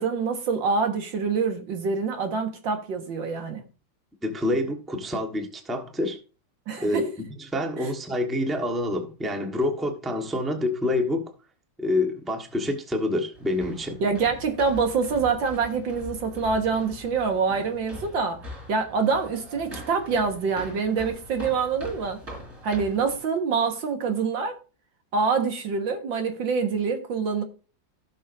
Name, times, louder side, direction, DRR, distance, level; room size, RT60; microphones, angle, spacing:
voice 1, 0.0-3.6 6.7-7.1 7.8-7.9 14.0-18.4 18.7-22.2 22.6-24.6 25.1-27.4, right 5 dB, 80° right, 2.2 m, -26 dB
voice 2, 4.2-6.2 6.8-7.1 7.4-11.3 11.8-14.0, left 1 dB, ahead, 1.1 m, -27 dB
sound 1, 13.3-23.2, equal, 35° right, 4.4 m, -42 dB
16.0 x 6.4 x 2.6 m
omnidirectional pair, 2.0 m